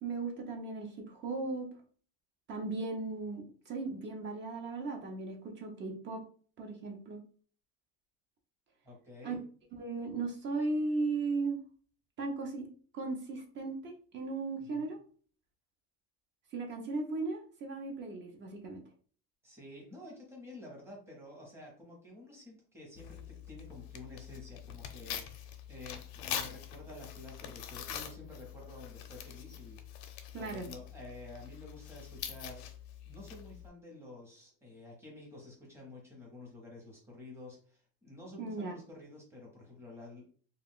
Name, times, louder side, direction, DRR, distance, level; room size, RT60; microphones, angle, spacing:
voice 1, 0.0-1.7 2.5-6.2 6.6-7.2 9.2-9.4 9.8-11.6 12.2-12.7 12.9-15.0 16.5-18.8 30.3-30.7 38.4-38.8, right 3 dB, 30° right, 3 dB, 0.5 m, -36 dB
voice 2, 8.8-9.4 14.6-14.9 19.4-30.1 30.4-32.7 33.1-40.3, left 2 dB, 5° right, -2 dB, 0.8 m, -50 dB
Tearing, 23.0-33.7, left 9 dB, 75° left, 0.6 m, -44 dB
2.3 x 2.3 x 3.5 m, 0.44 s
cardioid pair, 160°, 39 cm